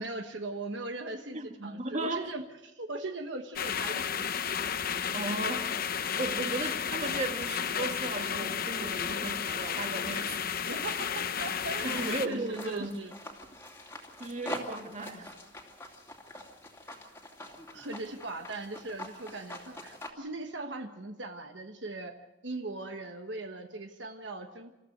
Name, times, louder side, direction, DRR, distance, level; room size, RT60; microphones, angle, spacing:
voice 1, 0.0-4.2 10.7-13.1 16.9-17.1 17.7-22.1 22.4-24.8, right 2 dB, 70° right, 6 dB, 1.3 m, -39 dB
voice 2, 1.3-2.3 5.1-5.7 6.2-10.4 11.8-12.9 14.2-15.4, right 2 dB, 40° right, 6 dB, 1.7 m, -36 dB
sound 1, 3.6-12.3, left 7 dB, 50° left, 0.9 m, -32 dB
sound 2, 11.8-20.1, left 1 dB, 15° left, 2.6 m, -45 dB
27.0 x 14.5 x 6.6 m, 0.98 s
head